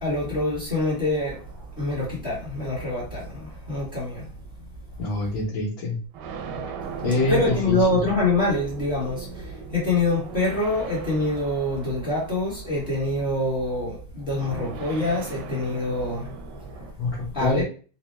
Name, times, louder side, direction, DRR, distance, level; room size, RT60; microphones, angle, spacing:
voice 1, 0.0-1.4 1.8-4.2 7.3-16.3 16.7-16.8 17.3-17.6, left 2 dB, 30° left, 1.2 m, -25 dB
sound 1, 1.3-4.0 4.9-5.0 6.1-13.5 14.4-16.9, right 5 dB, 75° right, 1.0 m, -39 dB
voice 2, 5.0-6.0 7.0-8.0 17.0-17.6, left 2 dB, 65° left, 1.8 m, -26 dB
4.2 x 2.2 x 3.1 m
omnidirectional pair, 2.3 m